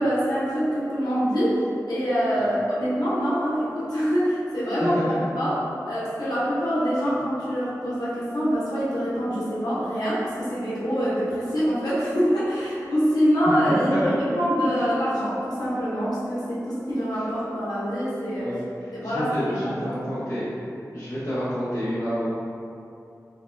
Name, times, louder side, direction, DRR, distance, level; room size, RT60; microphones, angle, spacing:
voice 1, 0.0-1.6 1.9-5.6 5.9-18.5 18.9-20.0, equal, 85° left, -9 dB, 0.8 m, -25 dB
voice 2, 4.8-5.3 13.4-13.6 13.9-14.1 14.6-14.7 18.4-18.6 19.0-20.5 20.9-22.3, equal, 60° left, -16 dB, 1.0 m, -28 dB
4.0 x 2.2 x 2.6 m, 2.6 s
wide cardioid pair, 70°, 6 cm